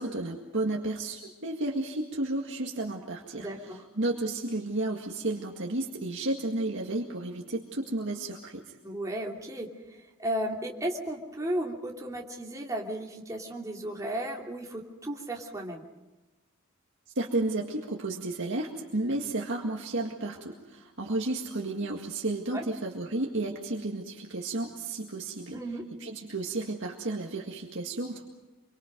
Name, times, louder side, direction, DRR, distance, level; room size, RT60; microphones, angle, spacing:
voice 1, 0.0-3.5 4.0-8.7 17.2-25.6 26.0-28.2, right 2 dB, 60° right, 0 dB, 2.0 m, -32 dB
voice 2, 3.4-3.8 8.8-15.8 22.5-22.7 25.5-25.9, right 1 dB, 15° right, -1 dB, 2.9 m, -34 dB
26.0 x 24.5 x 5.2 m, 1.1 s
head